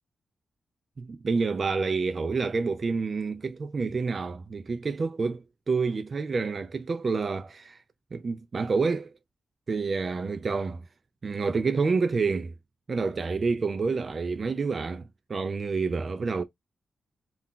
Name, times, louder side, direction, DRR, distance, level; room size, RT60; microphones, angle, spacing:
voice 1, 1.0-7.8 8.1-9.1 9.7-10.8 11.2-12.5 12.9-16.4, right 4 dB, 50° right, 0.4 m, -28 dB
2.3 x 2.1 x 3.7 m
cardioid pair, 70°, 0 cm